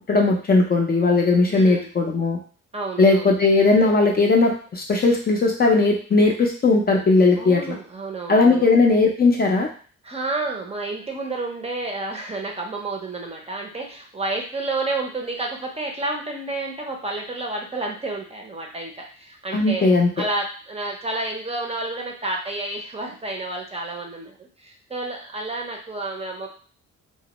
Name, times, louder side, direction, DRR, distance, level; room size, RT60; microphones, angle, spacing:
voice 1, 0.1-2.4 3.0-7.7 8.3-9.7 19.5-20.1, left 3 dB, 30° left, 0 dB, 0.5 m, -18 dB
voice 2, 1.5-1.9 2.7-3.3 7.4-8.7 10.0-26.5, right 2 dB, 20° right, 0 dB, 0.5 m, -30 dB
2.1 x 2.0 x 2.9 m, 0.41 s
cardioid pair, 90°, 30 cm